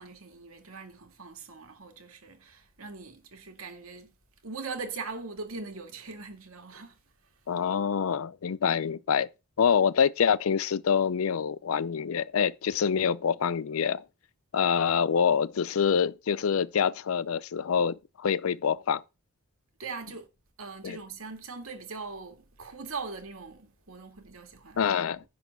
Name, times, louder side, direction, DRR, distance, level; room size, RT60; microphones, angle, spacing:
voice 1, 0.0-4.1 4.4-6.9 19.8-20.3 20.6-24.8, right 4 dB, 85° right, 2.1 m, -41 dB
voice 2, 7.5-9.3 9.6-14.0 14.5-19.0 20.8-21.0 24.8-25.2, left 7 dB, 90° left, 0.5 m, -26 dB
10.5 x 3.9 x 6.7 m
head